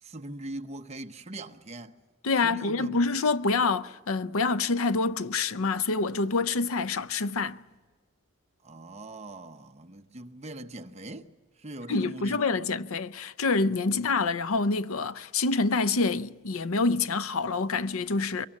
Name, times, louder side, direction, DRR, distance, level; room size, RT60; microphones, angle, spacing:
voice 1, 0.0-1.9 2.4-3.2 8.6-12.6 13.9-14.2, right 1 dB, 30° right, 0.8 m, -41 dB
voice 2, 2.2-7.6 11.9-18.5, left 3 dB, 80° left, 0.7 m, -27 dB
24.0 x 23.0 x 7.2 m
head